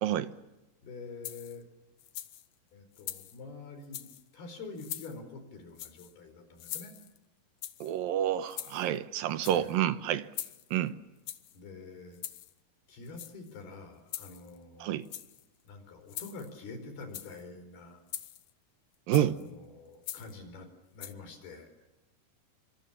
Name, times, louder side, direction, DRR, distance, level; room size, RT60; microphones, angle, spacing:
voice 1, 0.8-1.7 2.7-4.0 4.3-6.9 9.4-9.7 11.5-12.2 12.9-15.0 15.6-18.0 19.1-20.7 20.9-21.7, left 3 dB, 80° left, 6.7 m, -46 dB
sound 1, 1.2-1.6 2.0-2.5 3.0-3.4 3.8-4.2 4.8-5.2 5.8-6.1 6.6-7.2 7.6-7.9 8.5-9.0 9.3-9.8 10.3-10.8 11.3-11.6 12.1-12.5 13.1-13.6 14.1-14.6 15.0-15.4 16.1-16.5 17.0-17.4 18.1-18.5 19.1-19.4 20.0-20.4 21.0-21.1, left 12 dB, 65° left, 2.3 m, -42 dB
voice 2, 7.8-10.3 10.7-11.0 14.8-15.0 19.1-19.4, right 11 dB, 75° right, 2.7 m, -28 dB
27.0 x 26.0 x 7.4 m
omnidirectional pair, 4.4 m